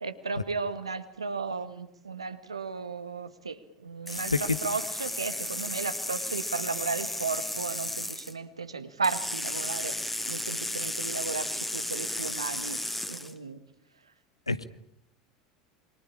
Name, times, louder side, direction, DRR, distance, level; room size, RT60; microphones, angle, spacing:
voice 1, 0.0-9.9 10.3-12.8 13.1-13.6, right 4 dB, 85° right, 11 dB, 1.8 m, -34 dB
voice 2, 4.1-4.6 14.5-14.6, left 3 dB, 90° left, 15 dB, 1.2 m, -28 dB
sound 1, 4.1-8.3 9.0-13.3, left 1 dB, 5° left, 2.4 m, -34 dB
28.0 x 23.5 x 8.7 m, 0.78 s
figure-of-eight pair, 75°, 3 cm